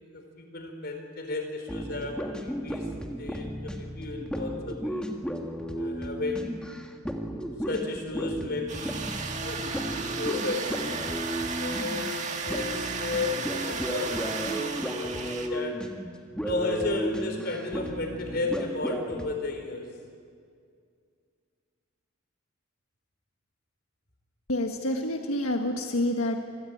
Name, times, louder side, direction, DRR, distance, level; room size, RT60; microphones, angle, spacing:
voice 1, 0.1-2.9 3.2-5.1 5.8-6.6 7.7-9.1 9.4-10.7 11.6-15.8 16.4-19.9, left 2 dB, 45° left, 5 dB, 4.4 m, -33 dB
sound 1, 1.7-19.4, equal, 5° left, 1.8 m, -34 dB
sound 2, 8.7-15.5, right 4 dB, 35° right, 2.0 m, -34 dB
voice 2, 24.5-26.4, left 1 dB, 85° left, 3 dB, 1.6 m, -28 dB
27.5 x 22.0 x 8.8 m, 2.2 s
head